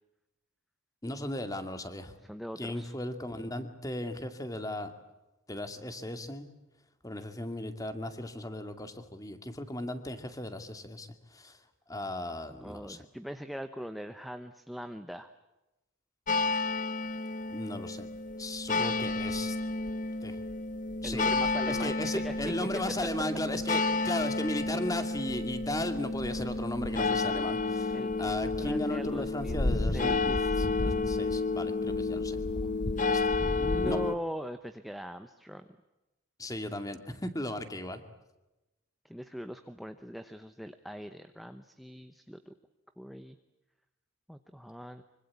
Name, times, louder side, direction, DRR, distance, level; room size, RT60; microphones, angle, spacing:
voice 1, 1.0-2.1 2.6-4.9 5.5-6.5 7.0-11.6 11.9-13.0 17.5-18.1 18.4-19.6 20.2-20.4 21.0-21.3 21.7-32.4 33.1-33.3 33.8-34.0 36.4-38.0, left 1 dB, 15° left, 8 dB, 2.4 m, -36 dB
voice 2, 2.2-2.9 12.6-15.3 21.0-22.8 27.9-30.6 32.6-32.7 33.6-35.7 39.0-42.5 43.0-43.4 44.3-45.0, equal, ahead, 8 dB, 0.9 m, -41 dB
sound 1, 16.3-34.1, left 3 dB, 40° left, 0.9 m, -31 dB
25.5 x 25.0 x 8.5 m, 0.99 s
head